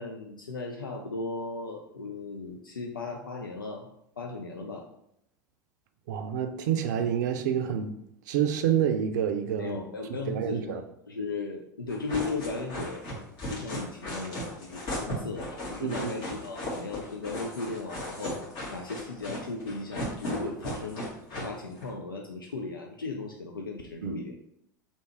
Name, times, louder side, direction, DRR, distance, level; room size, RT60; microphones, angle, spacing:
voice 1, 0.0-3.9 4.2-4.9 9.6-13.1 13.5-18.3 18.7-21.1 21.4-24.3, left 3 dB, 85° left, 1 dB, 0.4 m, -36 dB
voice 2, 6.1-7.9 8.3-9.8 10.3-10.8 15.8-16.1 24.0-24.2, right 9 dB, 60° right, 8 dB, 0.5 m, -28 dB
sound 1, 11.9-21.9, equal, 45° left, 1.6 m, -36 dB
3.4 x 2.8 x 4.3 m, 0.76 s
figure-of-eight pair, 80°, 11 cm